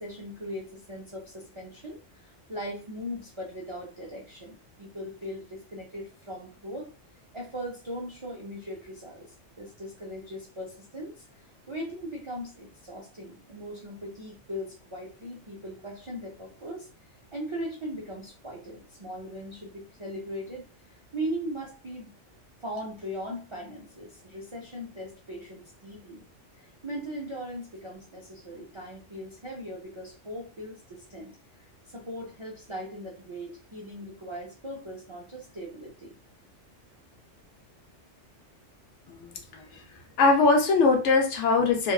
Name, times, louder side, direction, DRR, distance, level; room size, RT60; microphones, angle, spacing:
voice 1, 0.0-6.9 7.3-16.9 17.3-20.6 21.1-22.1 22.6-26.2 26.6-36.2, equal, 50° right, -4 dB, 0.3 m, -39 dB
voice 2, 39.1-39.8 40.2-41.9, left 3 dB, 75° left, 3 dB, 1.0 m, -22 dB
3.0 x 2.1 x 2.3 m, 0.35 s
omnidirectional pair, 1.3 m